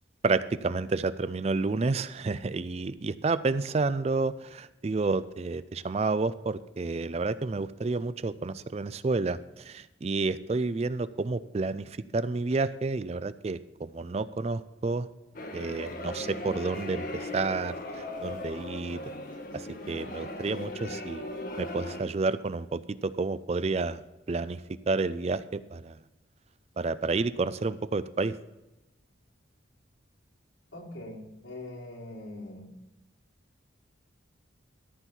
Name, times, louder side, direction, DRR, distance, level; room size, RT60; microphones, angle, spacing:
voice 1, 0.2-15.1 15.5-19.0 19.5-21.2 21.6-24.0 24.3-26.0 26.8-28.4, right 3 dB, 35° right, 15 dB, 0.4 m, -30 dB
sound 1, 15.3-22.0, left 1 dB, 45° left, 1.1 m, -38 dB
voice 2, 30.7-32.7, left 1 dB, 85° left, -4 dB, 3.6 m, -42 dB
13.5 x 4.6 x 6.9 m, 0.97 s
head